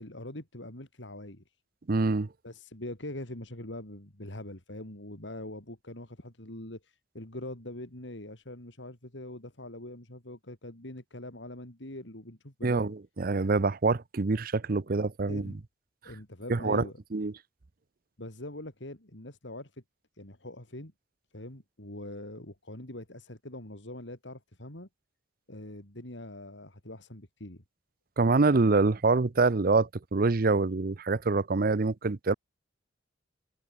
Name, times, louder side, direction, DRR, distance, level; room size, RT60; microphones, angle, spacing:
voice 1, 0.0-1.4 2.4-12.9 15.3-15.6 16.0-17.0 18.2-19.8 20.2-20.9 21.3-24.9 25.5-27.6, left 1 dB, 75° left, 3.9 m, -43 dB
voice 2, 1.9-2.3 12.6-15.5 16.5-16.8 17.1-17.3 28.2-32.3, right 3 dB, 50° right, 0.7 m, -25 dB
head